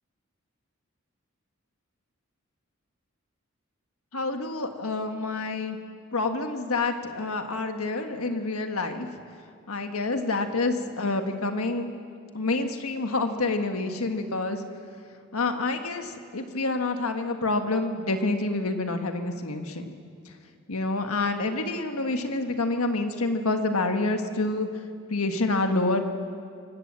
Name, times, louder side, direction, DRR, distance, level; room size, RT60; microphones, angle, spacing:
voice 1, 4.1-5.8 6.1-9.1 9.7-11.9 12.3-14.6 15.3-19.9 20.7-24.7 25.1-26.0, left 2 dB, 90° left, 6 dB, 1.5 m, -27 dB
25.0 x 18.0 x 7.5 m, 2.3 s
head